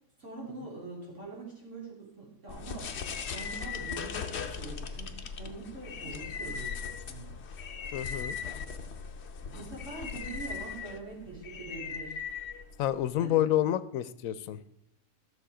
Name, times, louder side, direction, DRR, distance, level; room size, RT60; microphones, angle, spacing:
voice 1, 0.2-7.4 9.4-12.2 13.2-13.4, right 3 dB, 65° right, -6 dB, 3.7 m, -44 dB
sound 1, 2.5-13.1, left 6 dB, 55° left, 1.0 m, -39 dB
voice 2, 7.9-8.4 12.8-14.6, left 12 dB, 85° left, 15 dB, 1.0 m, -28 dB
13.0 x 6.7 x 4.9 m, 0.79 s
omnidirectional pair, 1.4 m